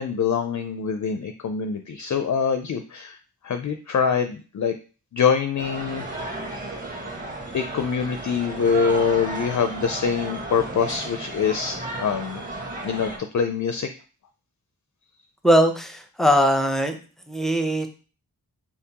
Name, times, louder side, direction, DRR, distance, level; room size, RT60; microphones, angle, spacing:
voice 1, 0.0-3.2 3.4-4.7 5.1-6.1 7.5-12.4 12.8-13.9, left 6 dB, 50° left, 7 dB, 0.5 m, -24 dB
sound 1, 5.6-13.2, right 2 dB, 20° right, 1.4 m, -34 dB
voice 2, 15.4-17.0 17.3-17.9, equal, ahead, 6 dB, 0.7 m, -20 dB
4.3 x 3.5 x 2.9 m, 0.36 s
wide cardioid pair, 65°, 38 cm